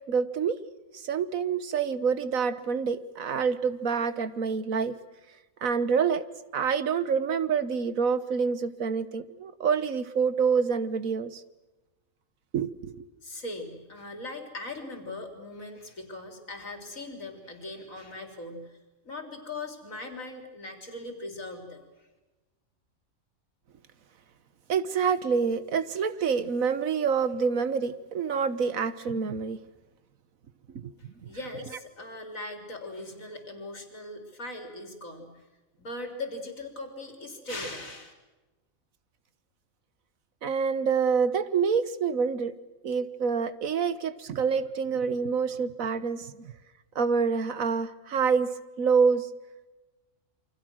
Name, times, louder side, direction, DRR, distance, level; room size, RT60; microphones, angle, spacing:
voice 1, 0.1-0.6 0.9-4.9 5.6-6.2 6.5-11.4 12.5-13.1 24.7-29.6 30.7-30.9 40.4-42.5 42.8-46.5 46.9-48.5 48.8-49.3, right 6 dB, 80° right, 14 dB, 1.6 m, -27 dB
voice 2, 13.2-18.8 19.0-22.1 31.0-35.5 35.8-38.1, left 2 dB, 75° left, 5 dB, 4.2 m, -40 dB
28.5 x 25.0 x 6.3 m, 1.2 s
omnidirectional pair, 1.4 m